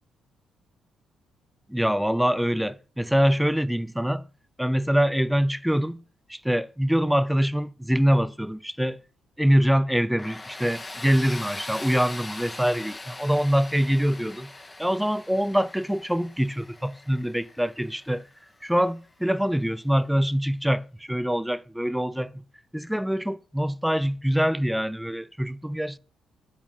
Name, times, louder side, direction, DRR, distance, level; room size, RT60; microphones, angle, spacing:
voice 1, 1.7-4.3 4.6-6.0 6.3-9.0 9.4-14.5 14.8-18.2 18.6-22.4 22.7-26.0, equal, ahead, 0.5 m, -24 dB
Tools, 10.2-18.9, left 2 dB, 20° left, 1.3 m, -41 dB
10.5 x 8.7 x 6.0 m
cardioid pair, 90°, 0 cm